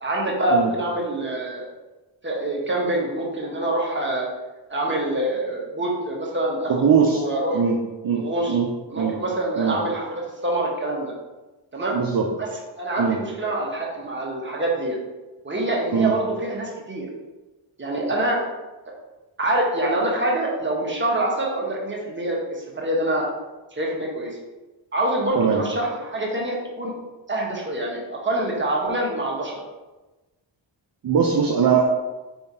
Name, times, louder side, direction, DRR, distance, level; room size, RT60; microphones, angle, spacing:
voice 1, 0.0-1.7 2.2-4.3 4.7-7.6 8.1-8.6 8.9-11.1 11.7-12.0 12.4-12.5 12.8-15.0 15.4-17.1 17.8-18.4 19.4-23.3 23.7-24.4 24.9-26.9 27.3-29.6, right 1 dB, 25° right, -3 dB, 1.3 m, -25 dB
voice 2, 6.7-7.2 7.5-7.8 8.0-8.7 9.0-9.1 9.6-9.8 11.9-12.3 13.0-13.2 15.9-16.1 25.4-25.6 31.0-31.9, right 6 dB, 45° right, 0 dB, 0.6 m, -20 dB
4.6 x 3.4 x 2.8 m, 1.1 s
cardioid pair, 50°, 48 cm